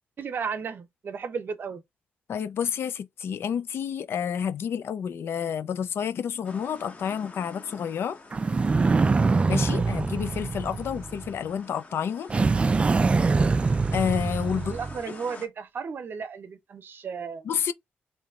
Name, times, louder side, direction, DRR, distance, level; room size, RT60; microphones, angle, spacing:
voice 1, 0.2-1.8 14.6-17.5, right 6 dB, 55° right, 0.9 m, -34 dB
voice 2, 2.3-8.2 9.5-12.3 13.9-14.8 17.5-17.7, left 7 dB, 70° left, 0.5 m, -29 dB
sound 1, 6.4-15.5, left 3 dB, 35° left, 1.1 m, -48 dB
sound 2, 8.3-11.4 12.3-15.0, right 4 dB, 25° right, 0.3 m, -24 dB
3.2 x 3.0 x 3.6 m
cardioid pair, 110°, 4 cm